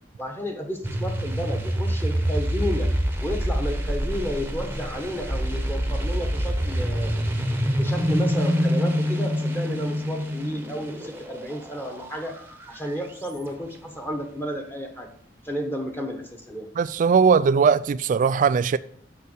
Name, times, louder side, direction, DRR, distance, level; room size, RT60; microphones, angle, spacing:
voice 1, 0.2-2.9 3.2-7.1 7.8-12.3 12.7-15.1 15.4-16.7, equal, 10° left, 1.1 m, -32 dB
sound 1, 0.8-13.3, equal, 15° right, 0.9 m, -26 dB
voice 2, 16.8-18.8, right 6 dB, 45° right, 0.3 m, -19 dB
6.8 x 5.7 x 6.5 m
head